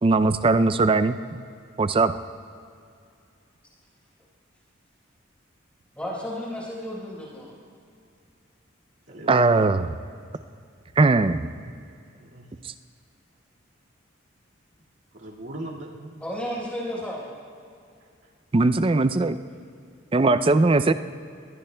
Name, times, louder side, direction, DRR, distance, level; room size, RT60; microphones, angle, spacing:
voice 1, 0.0-1.4 1.8-2.2 9.3-9.9 11.0-11.4 12.6-12.7 18.5-19.4 20.1-20.9, right 3 dB, 25° right, 12 dB, 0.4 m, -20 dB
voice 2, 5.9-7.5 16.2-17.3, equal, 5° left, -5 dB, 4.3 m, -33 dB
voice 3, 9.1-9.9 12.1-12.5 15.1-16.0 18.2-18.3, right 1 dB, 65° right, -3 dB, 2.0 m, -39 dB
22.0 x 19.5 x 2.2 m, 2.4 s
head